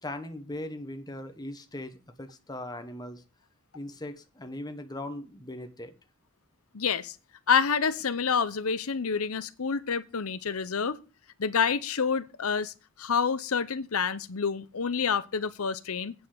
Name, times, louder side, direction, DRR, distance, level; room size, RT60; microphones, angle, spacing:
voice 1, 0.0-3.2 3.7-5.9, left 1 dB, 20° left, 1.1 m, -39 dB
voice 2, 6.7-7.1 7.5-11.0 11.4-12.7 13.0-16.1, left 6 dB, 85° left, 0.8 m, -28 dB
9.0 x 5.5 x 7.7 m
head